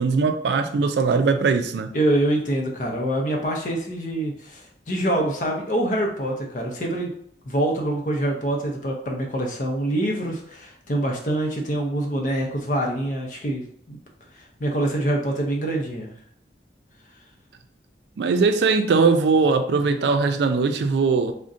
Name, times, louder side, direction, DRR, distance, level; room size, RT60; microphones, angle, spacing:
voice 1, 0.0-1.9 18.2-21.3, right 4 dB, 75° right, 8 dB, 0.3 m, -20 dB
voice 2, 1.9-7.1 7.5-14.0 14.6-16.1, right 1 dB, 45° left, 0 dB, 0.6 m, -25 dB
2.5 x 2.1 x 3.7 m, 0.67 s
head